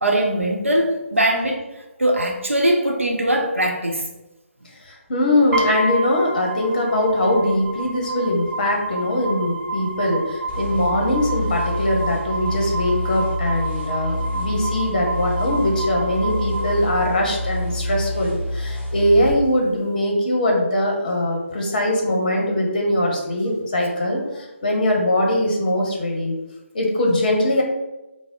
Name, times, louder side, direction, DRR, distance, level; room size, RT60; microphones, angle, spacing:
voice 1, 0.0-1.6 2.0-4.0, right 1 dB, 75° right, 1 dB, 0.7 m, -20 dB
voice 2, 4.9-26.3 26.7-27.6, left 1 dB, 40° left, 0 dB, 0.8 m, -21 dB
sound 1, 5.5-17.5, right 2 dB, 25° right, 1.2 m, -30 dB
sound 2, 10.5-19.4, left 1 dB, 5° right, 1.2 m, -28 dB
3.4 x 2.0 x 3.7 m, 1.0 s
figure-of-eight pair, 145°, 7 cm